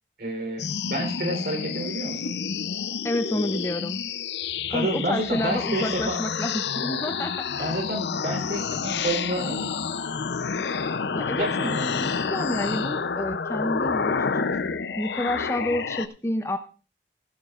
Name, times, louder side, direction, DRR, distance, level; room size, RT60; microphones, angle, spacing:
voice 1, 0.2-2.3 4.7-6.2 7.6-9.7 11.4-11.8 12.1-12.2, right 1 dB, 60° right, 3 dB, 3.6 m, -29 dB
sound 1, 0.6-16.1, left 5 dB, 75° left, 0.6 m, -29 dB
voice 2, 3.0-4.0 4.7-7.7 11.1-11.5 11.8-14.6 15.0-16.6, left 1 dB, 15° left, 8 dB, 0.6 m, -29 dB
16.0 x 11.5 x 2.4 m, 0.35 s
head